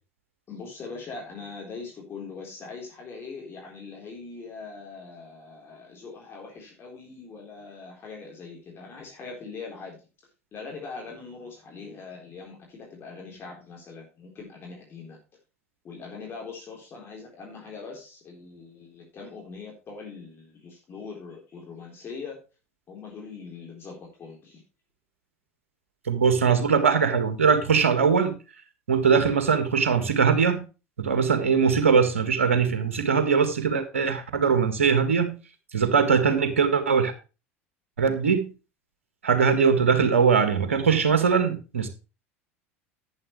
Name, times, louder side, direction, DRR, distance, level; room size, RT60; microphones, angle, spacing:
voice 1, 0.5-10.0 10.5-15.2 15.8-22.4 22.9-24.6, left 4 dB, 35° left, 4.0 m, -41 dB
voice 2, 26.1-28.3 28.9-30.6 31.0-35.4 35.7-37.1 38.0-38.5 39.2-41.9, right 6 dB, 75° right, 1.8 m, -21 dB
11.0 x 9.5 x 3.2 m
figure-of-eight pair, 75°, 7 cm